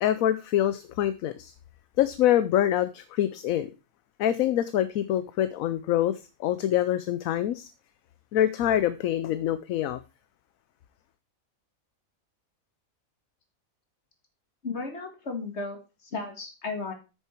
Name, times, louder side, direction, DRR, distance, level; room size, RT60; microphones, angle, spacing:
voice 1, 0.0-1.5 2.0-3.7 4.2-7.7 8.3-10.0, left 11 dB, 80° left, 13 dB, 1.0 m, -25 dB
voice 2, 14.6-16.9, left 3 dB, 50° left, 4 dB, 2.2 m, -35 dB
9.0 x 6.8 x 4.4 m, 0.30 s
omnidirectional pair, 1.5 m